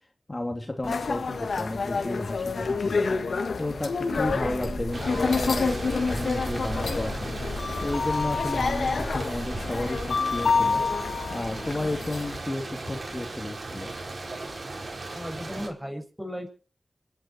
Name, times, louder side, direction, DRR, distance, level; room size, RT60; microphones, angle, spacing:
voice 1, 0.3-3.1 3.6-7.3 7.8-10.8 11.3-13.9, left 2 dB, 35° left, 3 dB, 3.0 m, -32 dB
sound 1, 0.8-12.4, left 4 dB, 90° left, 1.6 m, -28 dB
sound 2, 4.1-10.1, right 2 dB, 40° right, 3.8 m, -38 dB
sound 3, 4.9-15.7, right 2 dB, 70° right, 5.5 m, -37 dB
voice 2, 15.1-16.5, equal, 10° right, 6 dB, 6.8 m, -35 dB
26.0 x 10.5 x 4.8 m, 0.40 s
cardioid pair, 40°, 0 cm